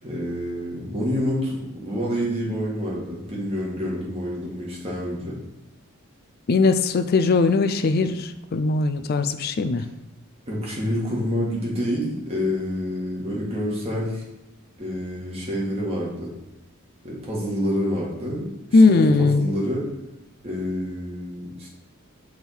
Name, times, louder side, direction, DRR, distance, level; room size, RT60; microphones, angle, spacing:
voice 1, 0.0-5.4 10.5-14.2 14.8-16.3 17.0-19.9 20.4-21.7, equal, 30° right, -4 dB, 1.7 m, -28 dB
voice 2, 6.5-9.9 18.7-19.4, left 3 dB, 45° left, 10 dB, 0.4 m, -19 dB
6.3 x 3.5 x 4.5 m, 0.92 s
head